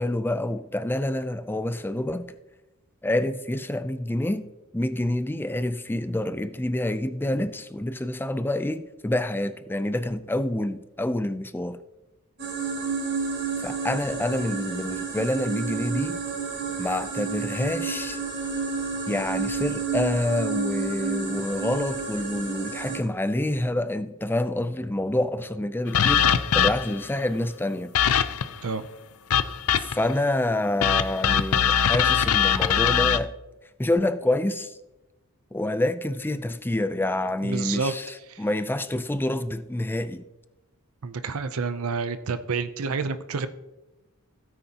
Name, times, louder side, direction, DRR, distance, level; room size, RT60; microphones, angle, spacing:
voice 1, 0.0-2.3 3.0-11.8 13.6-16.2 16.8-18.2 19.1-27.9 29.8-33.3 33.8-34.8 35.5-40.3, left 1 dB, 10° left, 0.5 m, -27 dB
sound 1, 12.4-23.0, right 5 dB, 55° right, 3.4 m, -30 dB
sound 2, 25.9-27.1 28.0-28.6 29.3-30.1 30.8-33.2, left 8 dB, 80° left, 0.5 m, -22 dB
voice 2, 37.4-37.9 38.3-38.4 41.0-43.5, right 4 dB, 75° right, 0.6 m, -29 dB
16.5 x 9.3 x 2.9 m
head